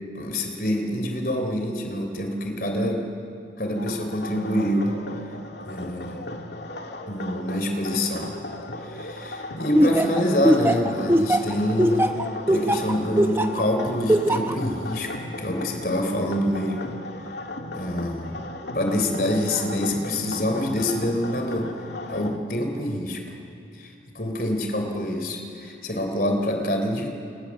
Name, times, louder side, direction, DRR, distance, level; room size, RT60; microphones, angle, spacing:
voice 1, 0.2-3.1 3.6-5.0 5.6-6.4 7.1-8.3 8.8-12.1 12.5-16.8 17.7-18.5 18.7-21.7 22.1-23.2 23.8-27.1, left 1 dB, 55° left, 4 dB, 3.6 m, -26 dB
sound 1, 3.8-22.4, left 2 dB, 80° left, 2.0 m, -36 dB
Laughter, 9.7-13.6 14.1-14.5, right 1 dB, 15° right, 0.8 m, -20 dB
28.5 x 25.5 x 7.4 m, 2.7 s
head